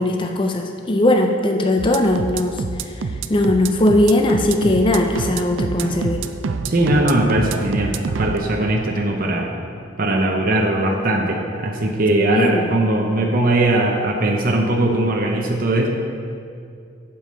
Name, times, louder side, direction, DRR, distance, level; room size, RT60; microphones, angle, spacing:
voice 1, 0.0-6.2 12.2-12.7, left 1 dB, 25° left, 4 dB, 0.5 m, -19 dB
sound 1, 1.8-8.4, right 4 dB, 70° right, 0.4 m, -26 dB
voice 2, 6.7-9.5 10.0-16.0, right 1 dB, 45° right, 0 dB, 0.7 m, -19 dB
7.9 x 7.0 x 5.5 m, 2.4 s
head